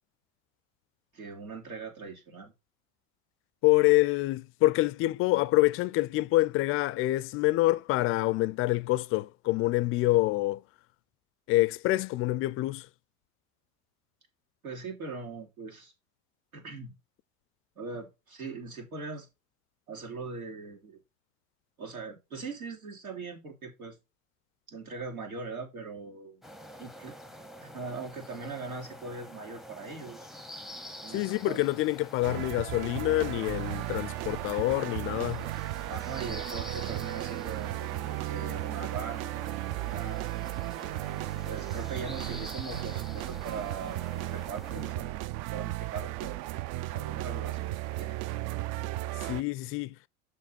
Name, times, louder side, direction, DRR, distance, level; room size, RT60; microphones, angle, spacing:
voice 1, 1.1-2.5 14.6-15.9 16.5-16.9 17.7-19.3 19.9-21.0 21.8-24.0 24.7-26.4 26.8-27.1 27.6-30.3 31.0-31.7 35.9-39.5 39.9-40.4 41.4-44.0 44.3-46.4 46.9-48.2, right 4 dB, 85° right, 3.3 m, -41 dB
voice 2, 3.6-10.6 11.5-12.9 31.1-35.5 49.2-50.0, left 18 dB, 35° left, 0.4 m, -26 dB
sound 1, 26.4-44.9, left 1 dB, ahead, 0.8 m, -47 dB
sound 2, 32.2-49.4, right 16 dB, 40° right, 0.4 m, -35 dB
6.8 x 5.9 x 4.5 m
hypercardioid pair, 85°, 41 cm